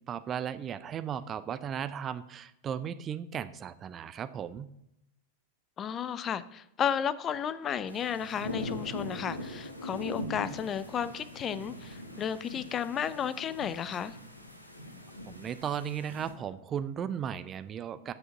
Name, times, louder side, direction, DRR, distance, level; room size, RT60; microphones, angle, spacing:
voice 1, 0.0-4.7 15.3-18.1, right 8 dB, 25° right, 13 dB, 0.5 m, -36 dB
voice 2, 5.8-14.2, left 8 dB, 25° left, 15 dB, 0.5 m, -33 dB
sound 1, 7.9-16.3, left 1 dB, 85° left, 1.1 m, -41 dB
7.6 x 6.3 x 5.9 m, 0.81 s
figure-of-eight pair, 90°, 0 cm